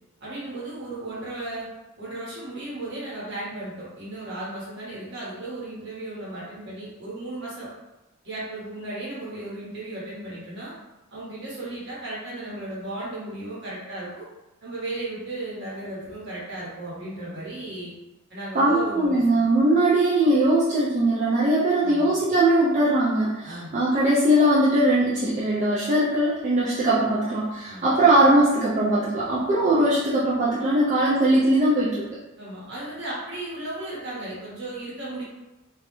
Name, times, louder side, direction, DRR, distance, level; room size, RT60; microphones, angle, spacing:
voice 1, 0.2-1.7 2.0-7.7 8.2-10.7 11.1-14.3 14.6-17.9 18.3-19.5 21.8-22.1 23.4-23.8 27.6-28.1 32.4-35.2, right 2 dB, 55° right, -7 dB, 1.0 m, -35 dB
voice 2, 18.5-32.1, right 1 dB, 35° right, -7 dB, 0.3 m, -20 dB
2.3 x 2.0 x 2.9 m, 1.0 s
head